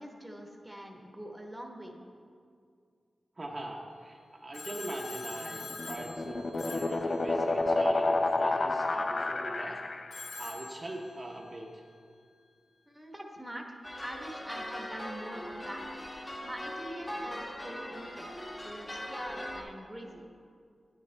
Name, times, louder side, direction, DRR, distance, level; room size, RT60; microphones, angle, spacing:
voice 1, 0.0-2.0 12.9-15.8 16.4-18.3 18.6-20.3, right 1 dB, 5° right, 1 dB, 1.1 m, -44 dB
voice 2, 3.4-9.8 10.4-11.8, right 1 dB, 35° right, -1 dB, 0.9 m, -41 dB
Telephone, 4.5-7.8 10.1-11.6, left 3 dB, 85° left, 0.8 m, -45 dB
sound 1, 5.5-10.3, left 2 dB, 45° left, 0.4 m, -30 dB
sound 2, 13.8-19.6, left 1 dB, 20° left, 1.2 m, -40 dB
11.5 x 9.6 x 3.3 m, 2.3 s
wide cardioid pair, 100°, 0 cm